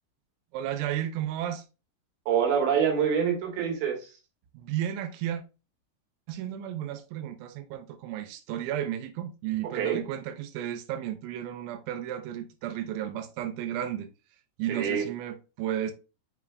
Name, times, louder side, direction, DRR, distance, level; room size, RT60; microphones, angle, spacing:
voice 1, 0.5-1.6 4.5-5.4 6.3-14.1 14.6-15.9, right 11 dB, 80° right, 2.9 m, -33 dB
voice 2, 2.3-4.1 9.7-10.0 14.7-15.1, right 7 dB, 65° right, 2.8 m, -26 dB
7.1 x 5.7 x 2.3 m
omnidirectional pair, 5.9 m